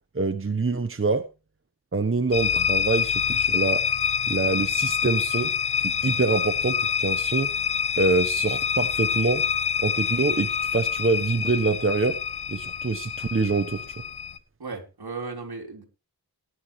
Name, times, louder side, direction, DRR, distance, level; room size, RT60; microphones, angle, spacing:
voice 1, 0.1-1.2 1.9-3.8 4.3-5.5 5.8-7.5 8.0-9.4 9.8-12.2 12.5-13.9, right 3 dB, 35° right, 7 dB, 1.1 m, -25 dB
sound 1, 2.3-14.4, left 7 dB, 90° left, 1.0 m, -26 dB
voice 2, 14.6-15.9, right 4 dB, 75° right, 2 dB, 3.5 m, -35 dB
17.5 x 11.0 x 3.2 m, 0.29 s
wide cardioid pair, 75°, 38 cm